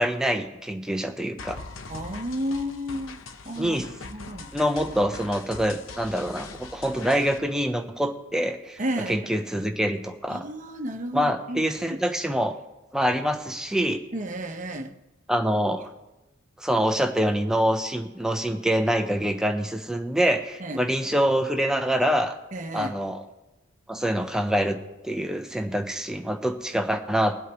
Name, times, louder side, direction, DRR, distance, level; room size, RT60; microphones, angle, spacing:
voice 1, 0.0-1.6 3.6-3.9 4.5-8.8 9.1-10.4 11.1-12.6 12.9-14.0 15.3-15.9 16.6-22.3 22.7-23.2 23.9-24.8 25.0-27.4, equal, 5° right, 4 dB, 0.9 m, -25 dB
sound 1, 1.4-7.4, left 4 dB, 80° left, 0.9 m, -41 dB
voice 2, 1.9-4.5 8.8-9.7 10.3-11.6 11.9-12.0 14.1-14.9 20.6-20.9 22.5-22.9, equal, 40° right, 4 dB, 1.1 m, -33 dB
21.5 x 8.1 x 3.1 m, 0.99 s
head